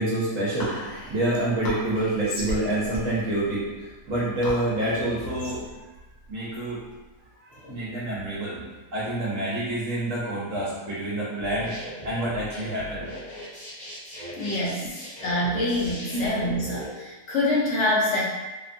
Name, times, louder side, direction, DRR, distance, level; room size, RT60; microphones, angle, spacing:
voice 1, 0.0-5.7 6.3-6.8 7.5-11.7 12.0-13.1 16.1-16.3, right 1 dB, 65° right, -8 dB, 1.1 m, -27 dB
Whispering, 0.6-7.3, left 1 dB, 85° left, 1.2 m, -37 dB
sound 1, 11.4-16.9, equal, 35° left, 1.0 m, -39 dB
voice 2, 14.4-14.9 15.2-18.2, left 1 dB, 60° left, -5 dB, 0.8 m, -26 dB
2.8 x 2.1 x 2.5 m, 1.2 s
omnidirectional pair, 1.5 m